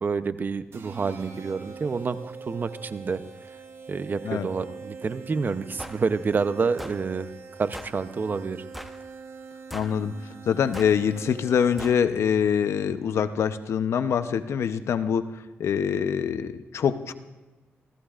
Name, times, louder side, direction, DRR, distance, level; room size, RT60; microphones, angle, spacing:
voice 1, 0.0-3.2 3.9-7.3 7.6-8.6, right 5 dB, 45° right, 12 dB, 0.7 m, -28 dB
sound 1, 0.7-12.1, right 5 dB, 65° right, 1.9 m, -43 dB
sound 2, 5.8-6.0 6.8-7.0 7.7-8.0 8.7-9.0 9.7-10.0 10.7-11.0 11.8-12.0, equal, ahead, 0.9 m, -39 dB
voice 2, 9.7-10.1 10.5-15.3 15.6-17.1, left 7 dB, 75° left, 10 dB, 0.8 m, -24 dB
29.5 x 15.0 x 2.5 m, 1.2 s
cardioid pair, 80°, 5 cm